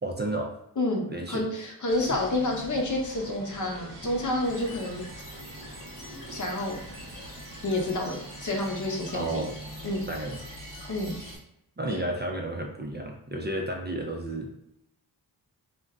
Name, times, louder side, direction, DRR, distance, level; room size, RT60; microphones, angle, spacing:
voice 1, 0.0-0.5 1.1-1.5 9.1-9.5 10.1-10.4 11.8-14.5, right 1 dB, 25° right, 1 dB, 0.5 m, -32 dB
voice 2, 0.8-5.1 6.3-6.8 7.6-9.5 9.8-10.1 10.9-11.1 11.9-12.0, left 1 dB, 45° left, 0 dB, 0.8 m, -29 dB
sound 1, 1.9-11.4, right 1 dB, 85° right, 0.9 m, -44 dB
sound 2, 4.4-11.4, left 1 dB, 85° left, 0.9 m, -47 dB
2.5 x 2.2 x 3.4 m, 0.80 s
cardioid pair, 45°, 41 cm